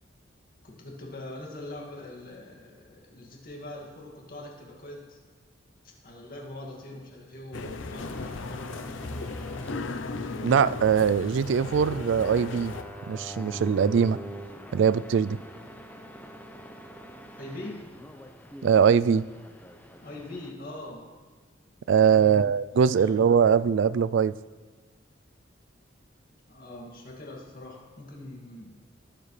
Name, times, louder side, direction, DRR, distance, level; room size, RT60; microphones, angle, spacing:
voice 1, 0.6-5.2 6.0-9.0 17.4-17.8 20.0-21.0 22.1-22.4 23.0-23.2 26.5-28.8, left 1 dB, 50° left, -2 dB, 2.3 m, -42 dB
sound 1, 7.5-12.8, left 3 dB, 75° left, 0.7 m, -36 dB
sound 2, 7.9-20.5, equal, 10° left, 0.7 m, -44 dB
voice 2, 10.4-12.7 13.1-14.2 14.7-15.4 18.6-19.2 21.9-24.3, right 7 dB, 65° right, 18 dB, 0.3 m, -22 dB
21.5 x 7.4 x 3.3 m, 1.5 s
head